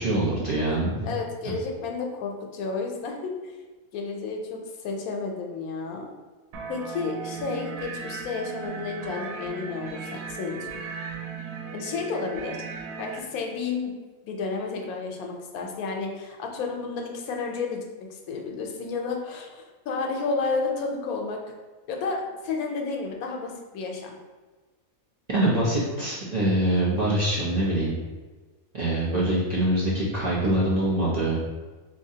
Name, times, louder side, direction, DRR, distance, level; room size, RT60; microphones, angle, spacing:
voice 1, 0.0-1.1 1.4-1.5 25.3-27.9 28.7-31.4, right 1 dB, 40° right, -7 dB, 0.6 m, -24 dB
voice 2, 1.0-3.6 3.9-6.1 6.7-10.7 11.7-12.6 13.0-14.0 14.2-17.8 18.1-21.4 21.9-24.2, left 4 dB, 85° left, 1 dB, 1.1 m, -31 dB
sound 1, 6.5-13.2, right 5 dB, 80° right, 1.0 m, -37 dB
3.5 x 3.0 x 2.7 m, 1.3 s
omnidirectional pair, 1.5 m